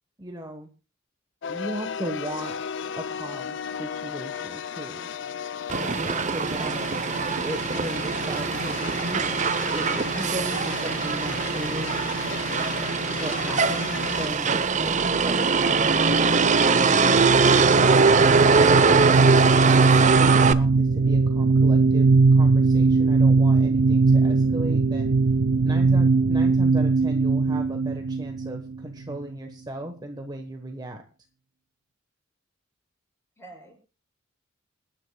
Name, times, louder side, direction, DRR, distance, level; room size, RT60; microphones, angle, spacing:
voice 1, 0.2-0.7 1.5-2.6 3.0-5.1 5.9-6.8 7.4-9.3 9.6-12.0 13.1-19.1 19.5-25.2 25.6-31.0, right 1 dB, 20° right, 4 dB, 1.2 m, -36 dB
sound 1, 1.4-14.3, left 7 dB, 60° left, 0.5 m, -35 dB
Motor vehicle (road), 5.7-20.5, right 4 dB, 35° right, 0.8 m, -22 dB
voice 2, 6.5-7.4 33.4-33.7, equal, 10° left, 0 dB, 7.0 m, -45 dB
sound 2, 16.7-29.2, right 3 dB, 70° right, 0.5 m, -20 dB
28.0 x 10.0 x 2.3 m, 0.32 s
head